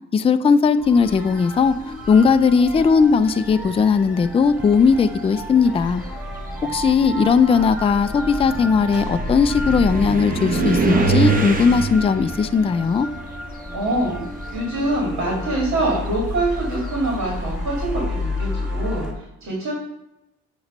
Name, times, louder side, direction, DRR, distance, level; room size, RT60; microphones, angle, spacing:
voice 1, 0.1-1.7 2.1-6.0 6.7-13.1, left 5 dB, 20° left, 0.3 m, -18 dB
sound 1, 0.8-19.1, left 1 dB, ahead, 1.1 m, -31 dB
sound 2, 2.3-2.8 3.8-3.9 4.5-14.4 14.7-17.3, right 3 dB, 30° right, 0.9 m, -26 dB
voice 2, 13.7-14.2 14.5-19.7, right 2 dB, 65° right, 2.0 m, -24 dB
7.9 x 3.1 x 5.3 m
cardioid pair, 90°, 30 cm